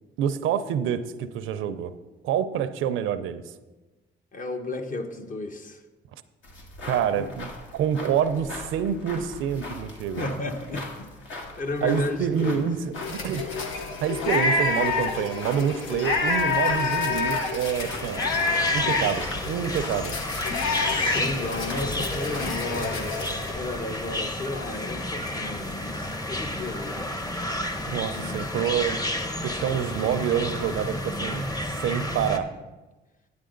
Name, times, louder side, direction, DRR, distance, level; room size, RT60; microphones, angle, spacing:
voice 1, 0.2-1.9 2.2-3.4 6.9-10.3 11.8-13.4 14.0-18.3 18.7-20.2 27.9-29.0 29.4-31.5 31.8-32.5, right 8 dB, 85° right, 12 dB, 0.6 m, -27 dB
voice 2, 4.3-5.8 7.2-7.4 10.2-11.1 11.6-12.7 18.6-19.1 19.6-19.8 20.8-27.2 28.1-29.0, left 2 dB, 40° left, 5 dB, 1.1 m, -34 dB
sound 1, 6.4-22.8, left 2 dB, 70° left, 2.1 m, -41 dB
sound 2, 13.0-23.5, left 4 dB, 85° left, 1.2 m, -28 dB
sound 3, 17.6-32.4, left 1 dB, 20° left, 0.9 m, -31 dB
9.6 x 9.6 x 3.9 m, 1.2 s
cardioid pair, 90°, 20 cm